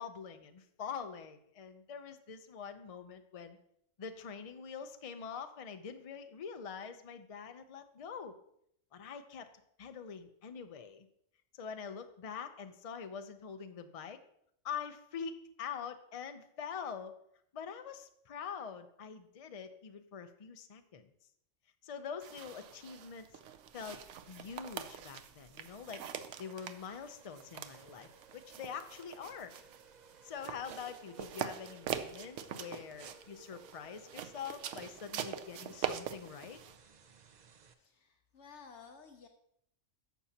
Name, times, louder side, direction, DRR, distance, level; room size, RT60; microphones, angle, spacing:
voice 1, 0.0-3.6 4.0-8.4 8.9-9.5 9.8-11.1 11.5-14.2 14.6-17.2 17.5-21.1 21.8-23.3 23.7-24.0 24.3-26.0 26.4-29.5 30.2-36.6, left 6 dB, 40° left, 8 dB, 0.5 m, -45 dB
sound 1, 22.2-36.8, right 9 dB, 85° right, 1.0 m, -44 dB
sound 2, 23.5-37.7, right 5 dB, 45° right, 0.6 m, -61 dB
voice 2, 37.8-39.3, left 6 dB, 70° left, 4 dB, 1.1 m, -54 dB
11.5 x 7.1 x 2.8 m, 0.72 s
omnidirectional pair, 1.2 m